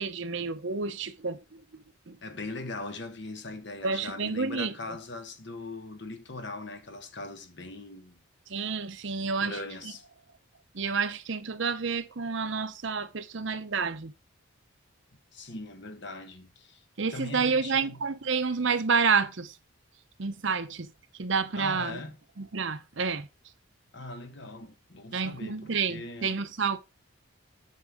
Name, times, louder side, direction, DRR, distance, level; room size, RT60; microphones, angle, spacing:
voice 1, 0.0-1.6 2.1-2.2 3.8-5.0 8.5-9.6 10.7-14.1 17.0-19.5 20.2-20.9 21.2-22.0 22.4-23.3 25.1-26.8, right 5 dB, 60° right, 0.8 m, -29 dB
voice 2, 2.2-8.2 9.4-10.0 15.3-18.0 21.6-22.2 23.9-26.4, left 2 dB, 55° left, 1.3 m, -40 dB
9.2 x 6.2 x 3.6 m
head